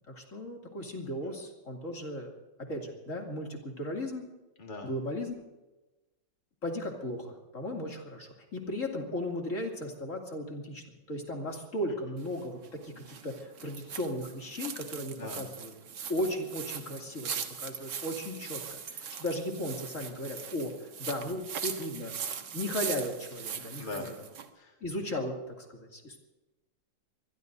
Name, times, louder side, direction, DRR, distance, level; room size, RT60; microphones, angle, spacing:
voice 1, 0.1-2.3 2.6-4.3 4.8-5.3 6.6-15.7 16.1-20.7 21.0-22.1 22.5-24.1 24.8-26.2, left 1 dB, 40° left, 1 dB, 3.0 m, -36 dB
voice 2, 4.6-4.9 15.2-15.5 23.8-24.3 24.5-24.8, left 3 dB, 25° left, 0 dB, 1.8 m, -41 dB
sound 1, 12.2-24.5, right 7 dB, 70° right, 1.8 m, -40 dB
25.0 x 21.5 x 2.7 m, 1.1 s
omnidirectional pair, 2.0 m